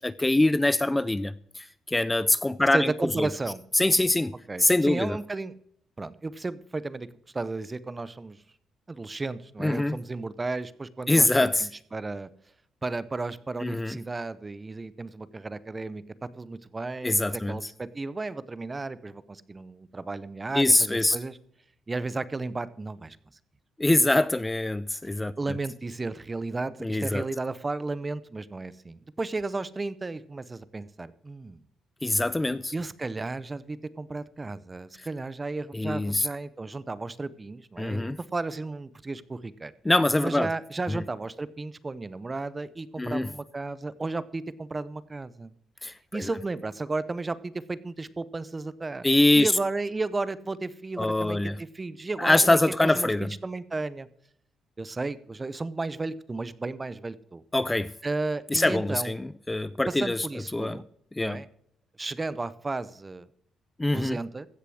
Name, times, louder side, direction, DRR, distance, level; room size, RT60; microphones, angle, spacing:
voice 1, 0.0-3.3 3.7-4.3 4.6-5.2 9.6-10.0 11.1-11.7 13.6-14.0 17.0-17.7 20.5-21.2 23.8-25.6 26.8-27.2 32.0-32.7 35.0-35.1 35.7-36.3 37.8-38.2 39.8-40.5 40.9-41.0 43.0-43.3 45.8-46.3 49.0-49.5 51.0-51.6 52.2-53.3 57.5-57.9 58.5-60.3 60.5-60.8 61.1-61.4 63.8-64.2, left 2 dB, 15° left, 0.4 m, -24 dB
voice 2, 2.7-3.6 4.5-5.5 6.0-7.1 7.3-8.4 8.9-11.3 11.6-12.3 12.8-16.0 16.4-21.4 21.9-23.2 25.4-31.6 32.7-38.0 38.3-39.7 40.2-45.5 46.1-49.1 49.3-52.6 52.8-54.1 54.8-57.4 58.0-59.1 59.9-60.8 61.2-61.5 62.0-63.3 63.9-64.5, right 3 dB, 25° right, 0.7 m, -33 dB
15.5 x 6.8 x 6.3 m
cardioid pair, 90°, 0 cm